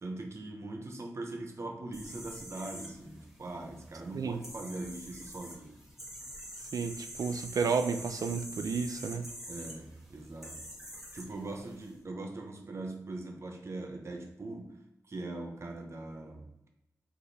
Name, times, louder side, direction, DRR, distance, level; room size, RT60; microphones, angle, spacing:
voice 1, 0.0-5.8 9.5-10.6 11.1-16.5, right 2 dB, 50° right, 3 dB, 0.7 m, -41 dB
sound 1, 1.9-11.9, equal, 5° right, 1.2 m, -46 dB
voice 2, 6.7-9.3, right 5 dB, 80° right, 9 dB, 0.4 m, -32 dB
4.9 x 2.6 x 4.0 m, 0.86 s
wide cardioid pair, 120°, 6 cm